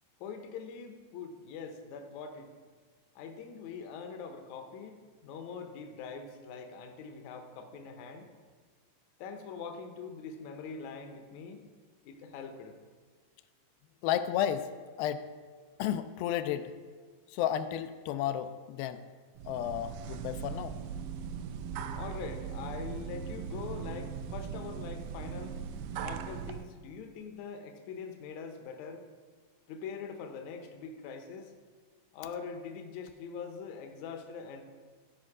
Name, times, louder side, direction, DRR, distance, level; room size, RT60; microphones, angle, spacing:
voice 1, 0.2-2.5 3.2-8.3 9.2-11.7 12.0-12.8 21.9-25.6 26.0-29.1 29.7-31.5 32.1-34.6, left 5 dB, 70° left, 5 dB, 1.8 m, -43 dB
voice 2, 14.0-14.7 15.0-15.2 15.8-16.7 17.3-19.0 19.5-20.8, left 10 dB, 90° left, 10 dB, 2.4 m, -32 dB
sound 1, 19.3-26.6, right 7 dB, 90° right, 1.8 m, -39 dB
14.5 x 5.3 x 4.8 m, 1.5 s
omnidirectional pair, 4.2 m